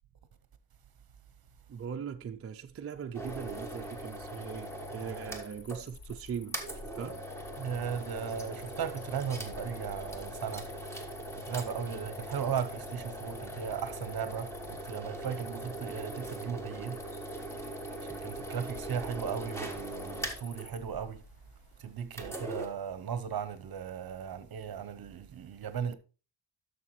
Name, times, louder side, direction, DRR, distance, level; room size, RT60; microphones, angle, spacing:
voice 1, 1.7-6.6 6.9-7.2, right 7 dB, 35° right, 0.4 m, -40 dB
sound 1, 3.1-5.8 6.1-6.2 6.5-20.7 22.1-22.7, right 1 dB, 5° left, 1.2 m, -41 dB
Cricket, 3.2-22.2, left 4 dB, 60° left, 1.1 m, -52 dB
voice 2, 7.6-10.7 11.3-17.0 18.0-21.2 21.8-25.9, right 7 dB, 50° right, 0.8 m, -37 dB
11.0 x 6.6 x 3.1 m
wide cardioid pair, 160°, 46 cm